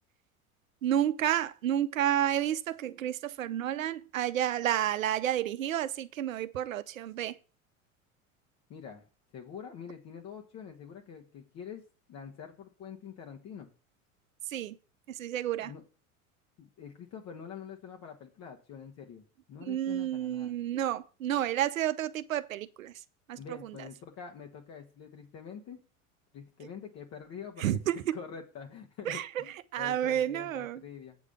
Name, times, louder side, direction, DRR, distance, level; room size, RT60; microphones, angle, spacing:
voice 1, 0.8-7.4 14.5-14.8 15.1-15.7 19.6-22.9 23.3-23.7 27.6-28.2 29.1-30.8, right 11 dB, 70° right, 0.7 m, -31 dB
voice 2, 8.7-9.0 9.3-11.8 12.1-13.7 15.6-15.8 16.6-20.6 23.4-25.8 26.3-31.2, left 7 dB, 35° left, 1.4 m, -46 dB
8.6 x 4.9 x 6.7 m
figure-of-eight pair, 75°, 41 cm